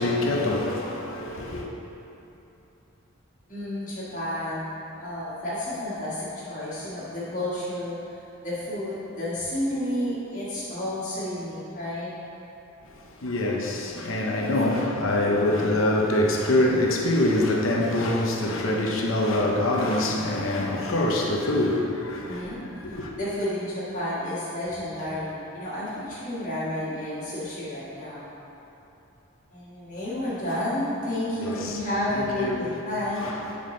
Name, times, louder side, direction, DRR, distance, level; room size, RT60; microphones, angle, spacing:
voice 1, 0.0-1.7 12.8-23.1 31.4-31.8 32.1-32.7 33.2-33.5, left 1 dB, 65° left, 0.8 m, -25 dB
voice 2, 3.5-8.2 8.4-12.1 14.1-14.4 22.3-22.6 23.2-28.3 29.5-33.3, left 1 dB, 35° left, 1.5 m, -31 dB
7.3 x 5.1 x 3.8 m
head